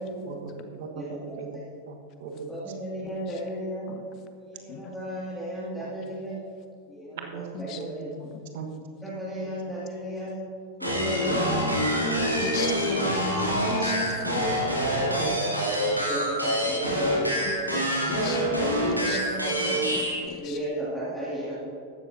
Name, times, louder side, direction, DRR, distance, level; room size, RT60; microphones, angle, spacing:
voice 1, 0.3-1.6 1.9-2.6 3.0-3.1 5.8-5.9 7.1-8.0 8.5-8.8 9.4-9.5 11.2-11.7 12.2-12.4 12.6-13.1 15.2-16.3, right 5 dB, 55° right, 4 dB, 1.3 m, -38 dB
voice 2, 1.0-1.7 2.5-3.9 4.4-6.4 6.9-8.1 9.0-10.4 10.8-12.9 13.6-15.4 16.0-17.5 18.1-19.9 20.4-21.6, equal, ahead, -9 dB, 2.2 m, -34 dB
sound 1, 10.8-20.3, equal, 90° right, 2.2 m, -26 dB
voice 3, 12.4-14.5 17.4-19.2 19.6-20.6, left 7 dB, 35° left, 6 dB, 1.1 m, -39 dB
15.0 x 12.0 x 2.7 m, 2.7 s
figure-of-eight pair, 90°, 0 cm